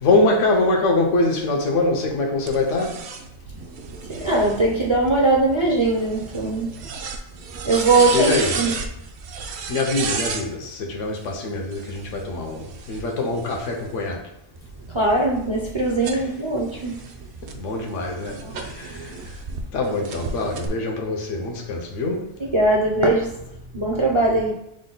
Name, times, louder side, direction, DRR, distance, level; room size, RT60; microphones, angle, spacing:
voice 1, 0.0-3.0 8.1-8.6 9.7-14.2 16.1-16.2 17.5-19.2 19.7-22.2, left 2 dB, 80° left, 1 dB, 1.1 m, -23 dB
sound 1, 2.5-10.5 11.6-14.0 14.6-19.6 20.0-20.7, right 5 dB, 65° right, 0.8 m, -34 dB
voice 2, 4.1-6.7 7.6-8.8 14.9-17.0 18.4-18.7 22.4-23.4 23.7-24.5, right 2 dB, 35° right, -3 dB, 0.4 m, -20 dB
6.2 x 2.2 x 3.9 m, 0.81 s
omnidirectional pair, 1.3 m